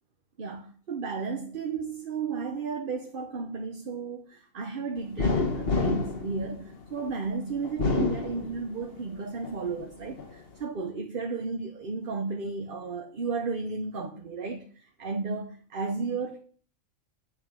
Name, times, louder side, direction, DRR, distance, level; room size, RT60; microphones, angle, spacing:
voice 1, 0.4-16.4, right 4 dB, 45° right, 1.1 m, -33 dB
sound 1, 5.2-7.1 7.6-9.0 9.4-10.3, left 4 dB, 45° left, 1.5 m, -29 dB
8.9 x 7.5 x 6.2 m
omnidirectional pair, 1.4 m